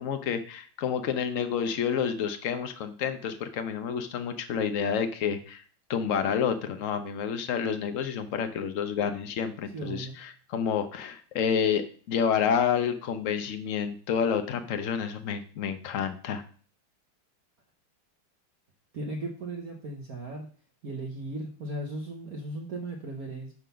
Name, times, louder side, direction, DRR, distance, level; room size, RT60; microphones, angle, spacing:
voice 1, 0.0-5.6 5.9-16.4, left 7 dB, 90° left, 8 dB, 0.7 m, -29 dB
voice 2, 9.7-10.1 18.9-20.5 20.8-23.5, right 2 dB, 55° right, 2 dB, 1.2 m, -36 dB
11.0 x 3.9 x 5.6 m, 0.43 s
omnidirectional pair, 2.4 m